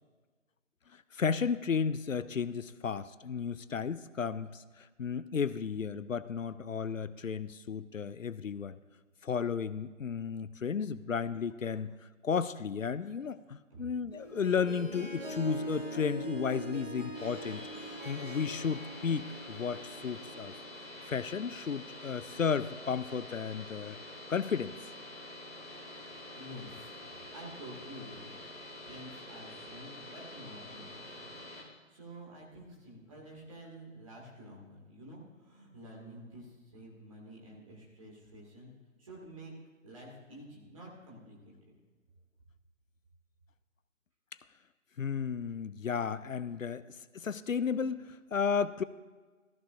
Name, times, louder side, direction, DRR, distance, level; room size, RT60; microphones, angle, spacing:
voice 1, 0.9-8.8 9.2-11.9 12.2-17.7 18.1-20.5 21.1-24.7 45.0-48.8, left 6 dB, 75° left, 15 dB, 0.6 m, -33 dB
Harp, 14.1-20.6, right 2 dB, 70° right, 2.9 m, -42 dB
sound 1, 17.1-31.6, left 1 dB, 45° right, 4.1 m, -47 dB
voice 2, 26.3-26.9 27.3-28.4 28.8-31.5 31.9-38.7 39.0-39.5 39.8-41.7, right 1 dB, 25° right, -3 dB, 2.1 m, -49 dB
14.5 x 14.0 x 2.6 m, 1.4 s
figure-of-eight pair, 160°, 40 cm